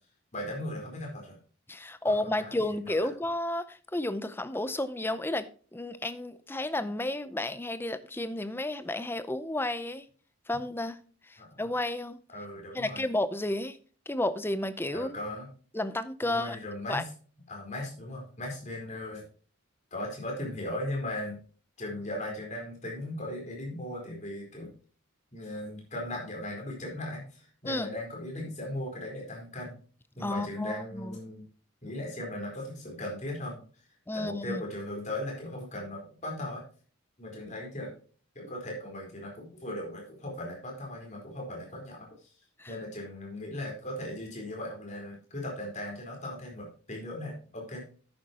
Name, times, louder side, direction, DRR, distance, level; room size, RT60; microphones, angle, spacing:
voice 1, 0.3-1.4 2.0-3.1 11.4-11.6 12.3-13.1 14.9-15.5 16.2-17.1 17.5-19.2 19.9-21.4 21.8-24.7 25.3-29.8 30.2-31.4 31.8-33.6 34.1-36.6 37.2-37.9 38.3-42.3 42.7-47.8, left 1 dB, 35° left, 4.2 m, -38 dB
voice 2, 1.7-10.0 10.5-11.0 11.3-12.2 12.7-13.8 14.1-15.2 15.7-16.6 16.9-17.0 27.6-27.9 30.2-31.2 34.1-34.6 42.6-42.7, left 1 dB, 10° left, 0.6 m, -32 dB
11.0 x 9.5 x 2.9 m
head